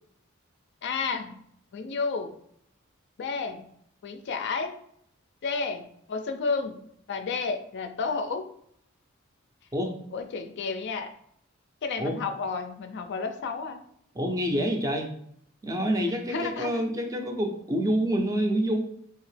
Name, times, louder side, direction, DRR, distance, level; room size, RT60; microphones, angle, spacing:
voice 1, 0.8-1.4 1.7-2.3 3.2-3.7 4.0-4.7 5.4-6.8 7.1-8.4 10.1-11.1 11.8-13.8 16.3-16.7, left 4 dB, 55° left, 7 dB, 0.4 m, -31 dB
voice 2, 14.1-15.1 15.6-18.8, equal, 15° right, 3 dB, 0.4 m, -27 dB
2.9 x 2.7 x 3.2 m, 0.68 s
head